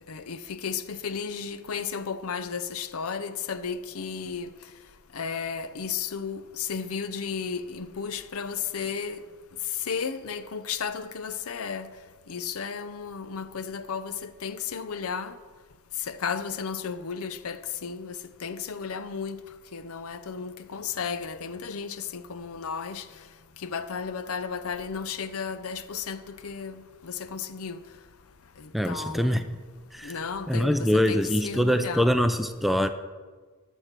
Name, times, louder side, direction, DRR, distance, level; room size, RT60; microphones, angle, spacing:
voice 1, 0.1-4.5 5.1-9.2 9.8-11.9 12.3-15.3 16.0-19.4 19.7-23.1 23.6-27.8 28.6-29.4 30.0-32.1, left 6 dB, 80° left, 0.6 m, -34 dB
voice 2, 28.7-29.4 29.9-30.2 30.5-32.9, equal, ahead, 0.4 m, -24 dB
11.5 x 6.3 x 6.6 m
head